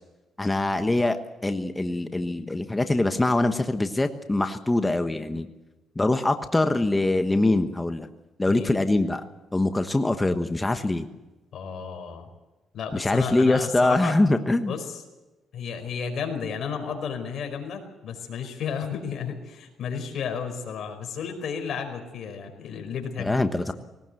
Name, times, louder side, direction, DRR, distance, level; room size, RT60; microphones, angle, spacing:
voice 1, 0.4-5.5 5.9-8.1 8.4-9.2 9.5-11.1 12.9-14.7 23.2-23.7, left 2 dB, 15° left, 8 dB, 1.3 m, -23 dB
voice 2, 11.5-12.3 12.7-14.1 14.7-15.0 15.5-23.7, left 6 dB, 65° left, 5 dB, 4.9 m, -33 dB
19.5 x 19.0 x 7.8 m, 1.1 s
cardioid pair, 90°, 0 cm